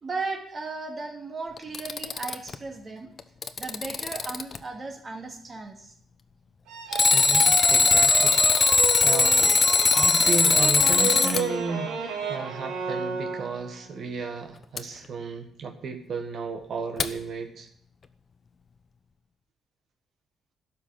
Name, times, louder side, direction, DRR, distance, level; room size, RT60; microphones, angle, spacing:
voice 1, 0.0-3.1 3.6-5.9, right 3 dB, 35° right, 3 dB, 2.7 m, -36 dB
Alarm, 1.6-2.5 3.2-4.6 6.9-11.4 14.8-14.9 17.0-17.1, left 4 dB, 40° left, 0.9 m, -20 dB
sound 1, 6.7-13.9, right 4 dB, 85° right, 2.2 m, -32 dB
voice 2, 7.1-9.6 9.9-17.7, right 5 dB, 60° right, 5 dB, 1.7 m, -34 dB
12.0 x 6.1 x 9.1 m, 0.69 s
cardioid pair, 90°, 0 cm